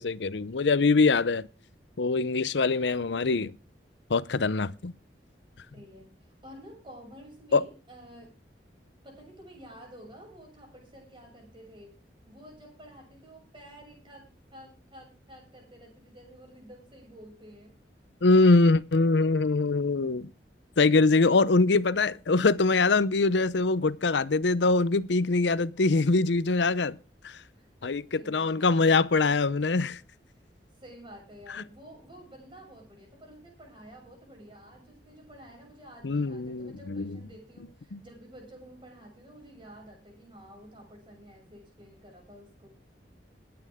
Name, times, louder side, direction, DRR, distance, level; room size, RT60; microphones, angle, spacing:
voice 1, 0.0-1.5 2.0-3.5 4.1-4.9 7.5-7.6 18.2-20.3 20.8-27.0 27.2-27.4 27.8-30.0 36.0-37.2 37.9-38.0, left 3 dB, 85° left, 0.7 m, -23 dB
voice 2, 5.7-8.4 9.0-11.9 12.3-17.8 27.5-27.7 28.1-28.9 30.8-42.7, equal, 30° right, 6.9 m, -50 dB
21.0 x 8.8 x 3.6 m
head